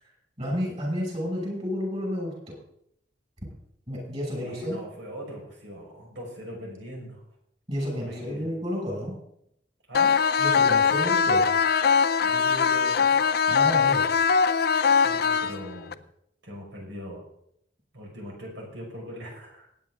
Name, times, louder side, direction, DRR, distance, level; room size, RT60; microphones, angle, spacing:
voice 1, 0.4-2.5 3.9-4.8 7.7-9.1 10.4-11.5 13.5-14.0, equal, 35° right, -1 dB, 6.4 m, -31 dB
voice 2, 4.4-7.2 7.9-8.5 9.9-10.2 12.2-13.3 15.0-16.0 16.4-17.2 17.9-19.7, equal, 80° right, -1 dB, 5.5 m, -40 dB
sound 1, 9.9-15.9, left 6 dB, 55° left, 0.5 m, -21 dB
19.0 x 9.4 x 3.8 m, 0.73 s
head